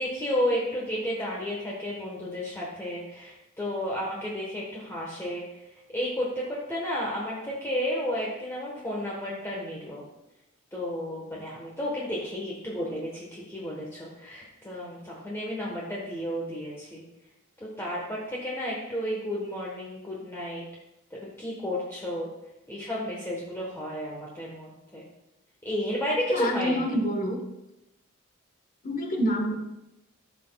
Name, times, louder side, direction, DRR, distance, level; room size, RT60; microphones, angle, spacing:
voice 1, 0.0-5.6 5.9-10.0 10.7-17.0 17.6-20.6 21.1-22.3 22.7-25.0 25.6-26.8, equal, 10° left, -5 dB, 1.2 m, -32 dB
voice 2, 26.3-27.4 28.8-29.5, equal, 40° left, 2 dB, 1.2 m, -27 dB
13.5 x 5.9 x 2.3 m, 0.92 s
head